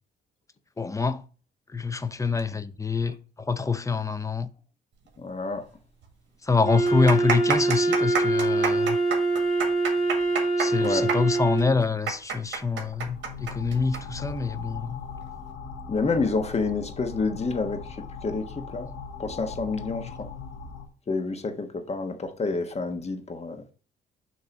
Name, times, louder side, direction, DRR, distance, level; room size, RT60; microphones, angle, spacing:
voice 1, 0.8-1.2 1.7-4.5 6.4-9.0 10.6-15.0, left 4 dB, 15° left, 0.6 m, -26 dB
voice 2, 5.2-5.6 10.8-11.0 15.9-17.8 18.2-18.4 18.7-18.9 19.2-20.3 21.1-23.6, left 4 dB, 30° left, 1.3 m, -28 dB
sound 1, 5.7-5.8 6.0-6.1 6.7-14.0 14.3-14.4 15.1-15.4, right 5 dB, 65° right, 1.7 m, -29 dB
Wind instrument woodwind instrument, 6.6-11.8, right 3 dB, 40° right, 2.3 m, -24 dB
sound 2, 12.5-20.9, left 5 dB, 85° left, 1.2 m, -39 dB
6.8 x 3.0 x 6.0 m
cardioid pair, 90°, 20 cm